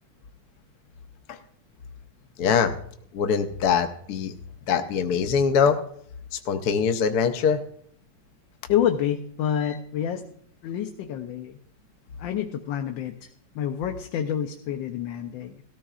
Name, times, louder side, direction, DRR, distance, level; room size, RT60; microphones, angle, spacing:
voice 1, 2.4-2.7 3.1-4.3 4.7-5.8 6.5-7.6, left 6 dB, 65° left, 6 dB, 1.1 m, -22 dB
voice 2, 8.7-10.2 10.6-11.6 12.2-15.6, left 9 dB, 85° left, 5 dB, 1.4 m, -28 dB
17.0 x 14.0 x 2.4 m, 0.64 s
omnidirectional pair, 2.0 m